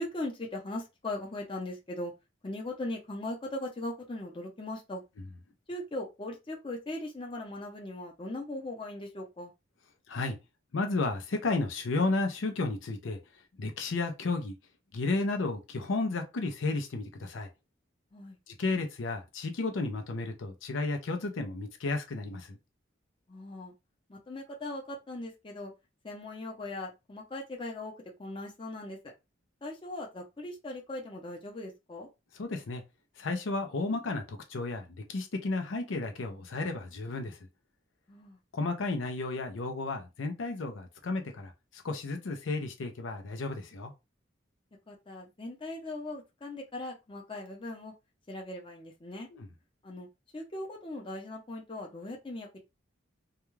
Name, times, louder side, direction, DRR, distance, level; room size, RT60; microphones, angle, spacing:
voice 1, 0.0-2.1 2.4-5.0 5.7-9.5 18.1-18.4 23.3-23.7 24.1-25.7 26.0-27.9 28.2-29.1 29.6-32.1 38.1-38.4 44.9-47.9 48.3-49.3 49.8-50.1 50.3-52.6, left 1 dB, 25° left, 0.6 m, -39 dB
voice 2, 10.7-13.2 13.6-14.5 14.9-17.5 18.5-22.6 32.3-32.8 33.2-37.4 38.5-43.9 49.3-49.5, left 3 dB, 80° left, 0.5 m, -33 dB
2.3 x 2.2 x 3.1 m
head